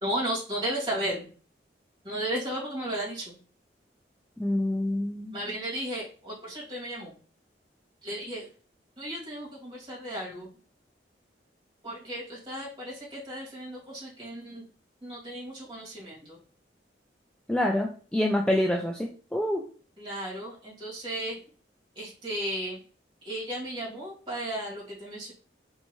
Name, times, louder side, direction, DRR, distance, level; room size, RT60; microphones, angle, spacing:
voice 1, 0.0-1.2 2.0-3.4 5.3-7.1 8.0-8.5 9.0-10.5 11.8-14.6 15.0-16.4 20.0-21.4 22.0-22.8 23.2-25.3, right 1 dB, 25° right, -5 dB, 2.1 m, -34 dB
voice 2, 4.4-5.4 17.5-19.6, left 1 dB, 5° left, 0 dB, 0.3 m, -27 dB
4.5 x 2.7 x 2.9 m, 0.40 s
head